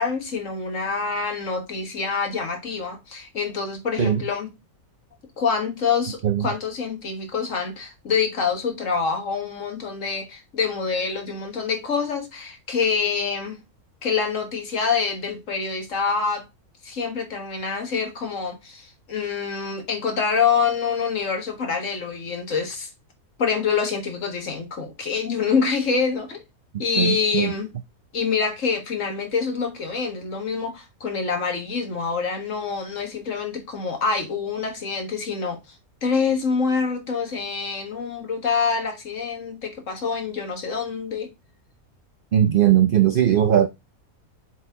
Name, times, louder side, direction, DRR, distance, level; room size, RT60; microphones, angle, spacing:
voice 1, 0.0-4.5 5.4-13.6 14.0-16.5 16.8-22.9 23.4-26.4 26.8-27.7 28.1-35.8 36.0-41.3, left 5 dB, 60° left, 1.8 m, -26 dB
voice 2, 27.0-27.5 42.3-43.7, right 10 dB, 80° right, 0.4 m, -19 dB
7.1 x 4.3 x 3.5 m
omnidirectional pair, 1.5 m